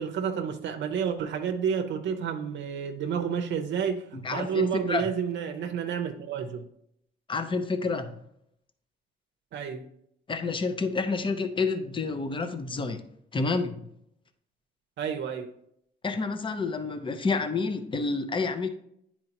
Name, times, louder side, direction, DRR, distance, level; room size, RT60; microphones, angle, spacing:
voice 1, 0.0-6.7 9.5-9.9 15.0-15.5, right 7 dB, 65° right, 5 dB, 0.6 m, -30 dB
voice 2, 4.1-5.0 7.3-8.2 10.3-13.1 13.3-13.8 16.0-18.7, left 4 dB, 25° left, 9 dB, 0.7 m, -29 dB
9.7 x 4.4 x 2.9 m, 0.74 s
cardioid pair, 90°, 20 cm